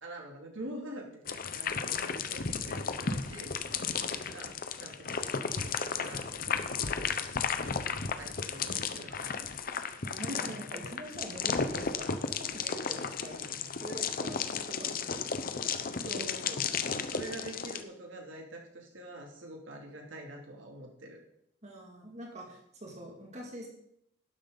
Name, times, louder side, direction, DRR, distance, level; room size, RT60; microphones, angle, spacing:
voice 1, 0.0-6.3 6.9-7.8 8.1-9.6 9.8-10.5 16.0-21.2, right 1 dB, 85° right, 1 dB, 2.8 m, -46 dB
sound 1, 1.3-17.8, left 5 dB, 50° left, 0.8 m, -34 dB
voice 2, 10.0-15.2 15.8-16.3 21.6-23.7, right 1 dB, 35° right, 0 dB, 2.4 m, -45 dB
12.5 x 10.5 x 4.0 m, 0.75 s
head